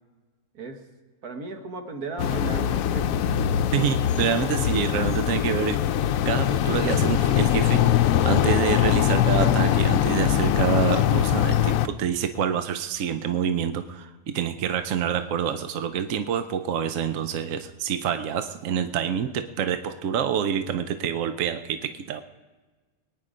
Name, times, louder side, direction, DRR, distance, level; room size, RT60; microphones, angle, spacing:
voice 1, 1.2-3.2, right 3 dB, 90° right, 5 dB, 1.9 m, -36 dB
sound 1, 2.2-11.9, left 10 dB, 70° left, 1.0 m, -22 dB
voice 2, 3.7-5.8 6.3-22.2, right 8 dB, 65° right, 9 dB, 1.0 m, -27 dB
21.5 x 9.9 x 5.0 m, 1.3 s
omnidirectional pair, 1.5 m